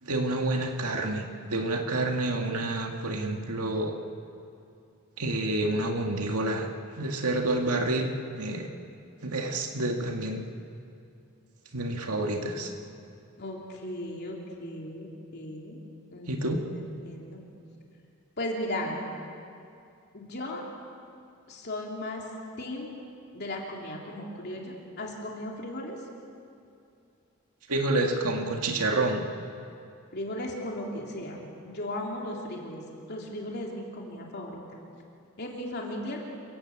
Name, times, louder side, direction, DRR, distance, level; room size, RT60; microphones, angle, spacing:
voice 1, 0.0-3.9 5.2-6.7 7.0-8.7 9.2-10.4 11.7-12.7 16.3-16.6 27.7-29.2, right 2 dB, 90° right, 3 dB, 2.0 m, -28 dB
voice 2, 13.4-15.8 16.1-17.4 18.4-19.0 20.1-20.6 21.5-22.2 22.6-22.9 23.3-26.0 30.1-32.8 33.1-34.6 35.4-36.2, left 1 dB, 50° left, -1 dB, 3.2 m, -36 dB
28.0 x 15.5 x 8.6 m, 2.5 s
head